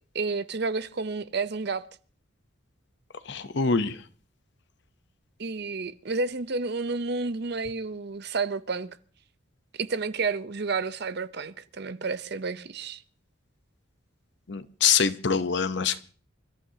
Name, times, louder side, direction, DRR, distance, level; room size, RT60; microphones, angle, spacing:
voice 1, 0.1-1.8 5.4-9.0 9.7-13.0, right 4 dB, 50° right, 0.7 m, -30 dB
voice 2, 3.3-4.0 14.5-16.0, left 6 dB, 55° left, 0.8 m, -24 dB
28.0 x 14.0 x 2.8 m
head